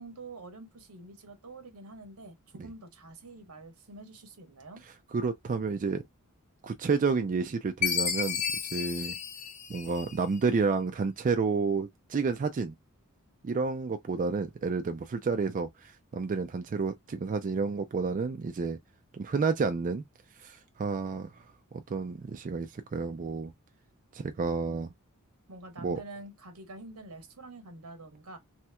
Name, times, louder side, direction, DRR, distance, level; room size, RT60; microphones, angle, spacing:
voice 1, 0.0-4.8 25.5-28.4, right 2 dB, 85° right, 1.2 m, -47 dB
voice 2, 5.1-6.0 6.6-8.4 8.7-9.2 9.7-12.7 13.4-18.8 19.1-20.0 20.4-21.4 21.9-23.5 24.1-24.9 25.8-26.0, right 4 dB, 35° right, 0.3 m, -30 dB
Chime, 7.8-10.4, left 8 dB, 35° left, 0.5 m, -32 dB
3.2 x 2.9 x 2.2 m
head